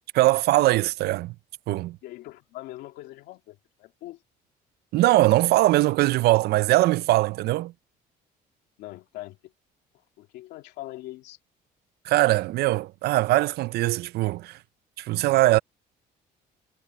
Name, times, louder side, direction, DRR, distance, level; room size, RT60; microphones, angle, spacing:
voice 1, 0.1-1.3 1.7-2.0 4.9-7.7 12.0-14.6 15.0-15.6, right 17 dB, 70° right, 0.4 m, -21 dB
voice 2, 2.0-4.2 8.8-9.5 10.2-11.4, left 16 dB, 90° left, 2.7 m, -42 dB
cardioid pair, 110°, 17 cm